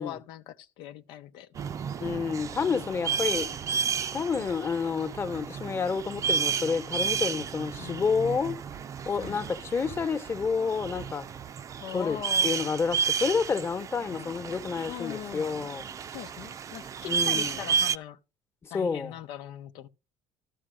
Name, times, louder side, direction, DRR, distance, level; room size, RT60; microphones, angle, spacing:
voice 1, 0.0-1.6 2.6-3.2 7.8-8.2 9.2-9.4 11.8-12.5 14.1-14.4 14.9-15.6 16.1-18.2 18.7-19.9, left 11 dB, 70° left, 0.9 m, -41 dB
sound 1, 1.5-18.0, right 7 dB, 40° right, 0.6 m, -32 dB
voice 2, 2.0-3.5 4.1-8.6 9.0-11.3 11.9-12.2 12.4-15.9 17.1-17.6 18.6-19.2, left 5 dB, 30° left, 1.2 m, -29 dB
12.5 x 5.5 x 6.3 m
supercardioid pair, 95°, 8 cm